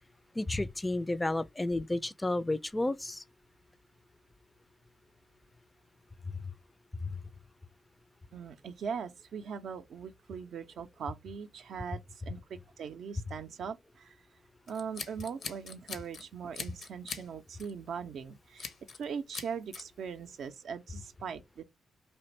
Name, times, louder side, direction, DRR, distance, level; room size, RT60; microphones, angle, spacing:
voice 1, 0.4-3.2 6.3-6.4 7.0-7.2, left 2 dB, 20° left, 0.3 m, -32 dB
voice 2, 8.3-14.2 14.7-18.7 19.0-21.6, right 6 dB, 70° right, 0.4 m, -40 dB
Scissors, 14.7-16.2 16.5-17.3 17.6-17.8 18.6-19.0 19.3-19.8, left 5 dB, 65° left, 0.6 m, -41 dB
3.3 x 2.5 x 3.0 m
hypercardioid pair, 40°, 0 cm